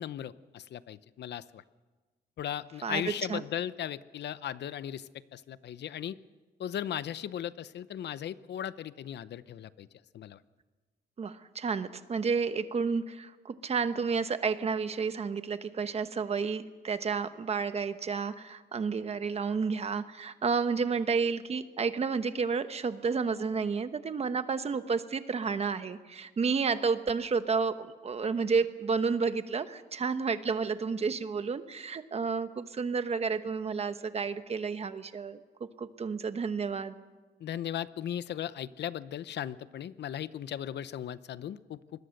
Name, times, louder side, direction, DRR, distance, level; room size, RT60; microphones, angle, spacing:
voice 1, 0.0-1.6 2.4-6.2 6.6-9.9 10.1-10.4 37.4-41.8, left 10 dB, 80° left, 16 dB, 0.7 m, -37 dB
voice 2, 2.8-3.4 11.2-35.4 35.8-36.9, right 5 dB, 35° right, 10 dB, 1.0 m, -31 dB
25.5 x 21.0 x 6.5 m, 1.3 s
wide cardioid pair, 170°, 18 cm